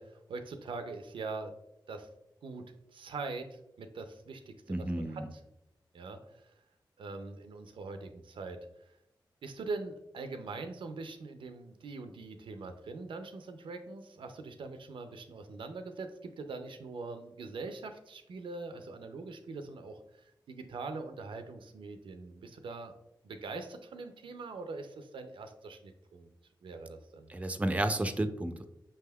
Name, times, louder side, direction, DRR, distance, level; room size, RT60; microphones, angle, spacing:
voice 1, 0.0-1.5 1.9-2.1 2.4-2.6 2.9-5.4 5.9-6.5 7.0-8.6 9.4-22.9 23.2-26.3 26.6-27.3, right 3 dB, 85° right, 7 dB, 0.4 m, -42 dB
voice 2, 4.7-5.2 27.3-28.7, right 1 dB, 15° right, 9 dB, 0.4 m, -32 dB
5.3 x 3.4 x 2.2 m, 0.85 s
cardioid pair, 50°, 8 cm